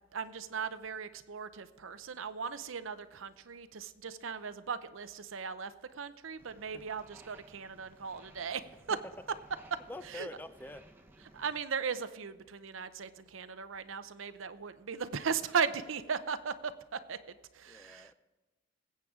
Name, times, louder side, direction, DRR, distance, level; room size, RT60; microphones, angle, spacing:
voice 1, 0.1-9.0 9.7-9.8 10.1-10.3 11.3-17.2 17.5-18.1, right 6 dB, 85° right, 12 dB, 0.7 m, -37 dB
sound 1, 6.4-11.6, right 1 dB, 10° right, 0.9 m, -59 dB
voice 2, 9.9-10.9 17.7-18.1, left 1 dB, 10° left, 12 dB, 0.5 m, -45 dB
20.0 x 8.4 x 3.7 m, 1.2 s
head